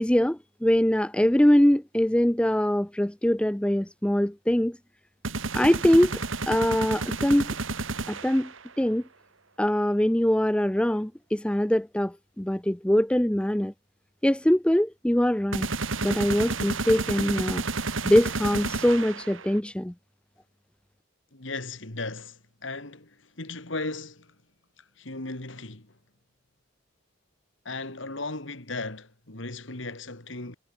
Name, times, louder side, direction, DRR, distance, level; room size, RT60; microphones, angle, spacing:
voice 1, 0.0-4.8 5.5-7.5 8.1-8.5 8.8-9.0 9.6-13.7 14.2-15.7 16.0-17.6 18.0-19.9, equal, 5° left, 0.5 m, -23 dB
sound 1, 5.2-8.6 15.5-19.6, right 3 dB, 80° right, 2.9 m, -31 dB
voice 2, 21.3-24.3 24.8-26.0 27.6-30.6, left 3 dB, 70° left, 3.0 m, -36 dB
head